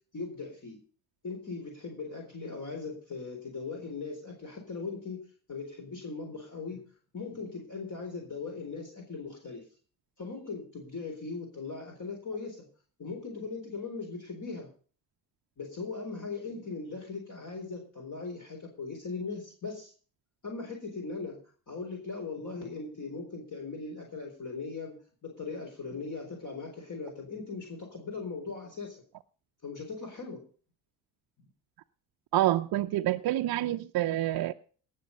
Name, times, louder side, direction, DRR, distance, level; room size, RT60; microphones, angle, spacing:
voice 1, 0.1-0.8 1.2-5.2 5.5-6.8 7.1-9.6 10.2-12.6 13.0-14.7 15.6-19.9 20.4-21.4 21.7-24.9 25.2-29.0 29.6-30.4, left 4 dB, 40° left, 1 dB, 4.0 m, -39 dB
voice 2, 32.3-34.5, right 14 dB, 50° right, 6 dB, 0.7 m, -27 dB
18.0 x 6.6 x 5.3 m, 0.42 s
hypercardioid pair, 60°, 48 cm